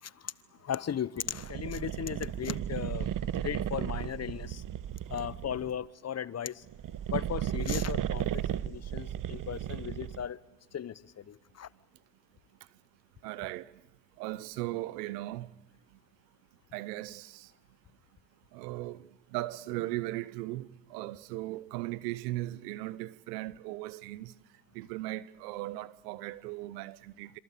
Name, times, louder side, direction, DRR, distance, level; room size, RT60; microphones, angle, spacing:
voice 1, 0.0-0.3 0.6-3.1 3.4-4.6 5.1-6.6 7.1-10.4 10.7-11.7, left 9 dB, 35° left, 1.0 m, -37 dB
sound 1, 1.3-5.7 6.6-10.3, right 10 dB, 40° right, 1.0 m, -35 dB
voice 2, 13.2-13.7 14.2-15.5 16.7-17.5 18.5-19.0 19.3-24.3 24.7-27.4, right 17 dB, 85° right, 1.0 m, -37 dB
26.5 x 26.5 x 8.4 m
hypercardioid pair, 75°, 47 cm